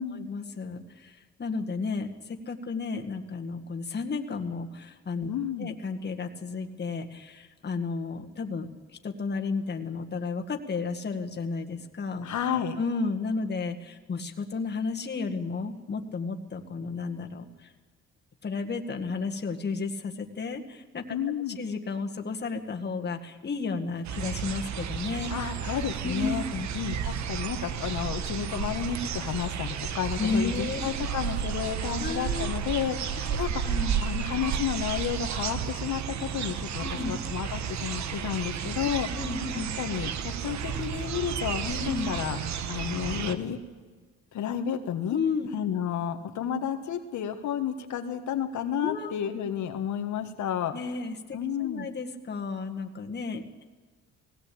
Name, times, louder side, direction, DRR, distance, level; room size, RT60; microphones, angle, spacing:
voice 1, 0.0-5.3 5.6-8.7 9.0-12.3 12.8-17.7 18.4-25.3 26.0-26.7 30.2-31.0 32.0-32.5 33.3-33.4 33.6-33.9 36.8-37.1 39.1-39.7 41.7-42.1 45.1-45.5 48.8-49.1 50.7-53.6, left 4 dB, 35° left, 3 dB, 1.9 m, -33 dB
voice 2, 5.3-5.7 12.2-12.8 21.1-21.6 25.3-26.4 26.7-39.1 39.5-42.4 42.7-43.6 44.3-45.2 45.5-50.7 51.3-51.9, left 9 dB, 75° left, 5 dB, 1.6 m, -31 dB
sound 1, 24.0-43.3, right 8 dB, 65° right, 1.3 m, -32 dB
19.0 x 17.0 x 8.6 m, 1.4 s
cardioid pair, 90°, 30 cm